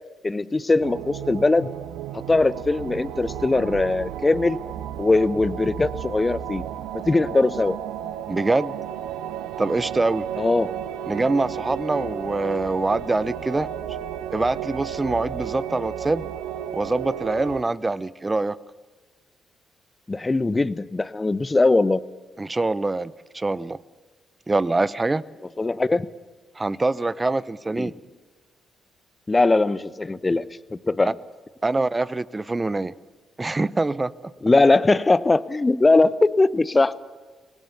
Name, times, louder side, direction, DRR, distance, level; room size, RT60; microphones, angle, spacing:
voice 1, 0.2-1.7 2.3-4.6 5.0-6.6 7.1-7.8 10.4-10.7 20.1-22.0 25.6-26.1 27.8-27.9 29.3-30.4 30.7-31.1 34.4-36.9, left 3 dB, 25° left, 17 dB, 1.0 m, -20 dB
sound 1, 0.8-17.6, right 10 dB, 70° right, 0.9 m, -33 dB
voice 2, 8.3-8.8 9.6-10.2 11.1-13.7 14.3-16.3 16.7-18.6 22.4-23.8 24.5-25.2 26.6-27.9 31.0-31.1 31.6-32.9 33.4-34.1, right 2 dB, 25° right, 20 dB, 0.8 m, -24 dB
25.0 x 19.5 x 7.1 m, 1.4 s
figure-of-eight pair, 40°, 0 cm